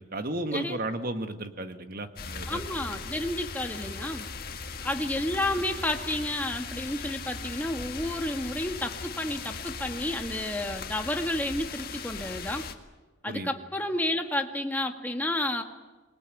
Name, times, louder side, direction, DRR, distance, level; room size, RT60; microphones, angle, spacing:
voice 1, 0.0-2.6 13.3-13.5, right 2 dB, 45° right, 8 dB, 1.6 m, -34 dB
sound 1, 2.2-12.7, left 5 dB, 50° left, 1.8 m, -38 dB
voice 2, 2.5-4.2 4.8-12.7 13.2-15.6, left 1 dB, 10° left, 4 dB, 1.6 m, -31 dB
25.0 x 19.5 x 9.1 m, 1.2 s
head